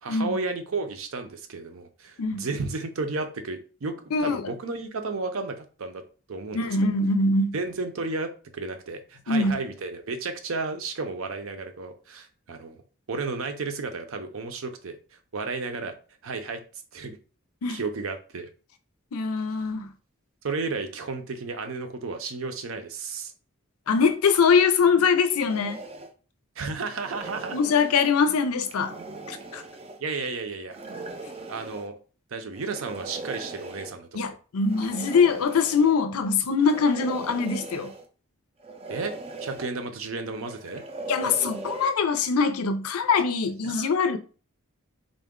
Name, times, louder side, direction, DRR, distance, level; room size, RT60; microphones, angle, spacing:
voice 1, 0.0-3.9 4.2-6.0 6.3-6.9 7.5-12.8 13.1-15.0 15.3-15.9 16.2-16.6 16.9-17.2 17.7-18.5 20.4-23.3 26.6-27.7 30.0-30.8 31.5-32.0 32.3-34.3 38.9-39.1 39.4-40.8 43.6-43.9, right 3 dB, 70° right, 0.6 m, -33 dB
voice 2, 4.1-4.4 6.5-7.5 9.3-9.6 17.6-17.8 19.1-19.9 23.9-25.8 27.5-28.9 29.3-29.6 34.1-37.9 41.1-44.2, left 5 dB, 85° left, 0.5 m, -23 dB
sound 1, 25.5-26.1 26.9-28.1 28.6-30.0 30.7-31.9 32.6-33.9 34.7-36.0 36.6-38.1 38.6-39.7 40.4-41.9, right 2 dB, 25° right, 0.3 m, -39 dB
3.7 x 2.2 x 3.6 m
head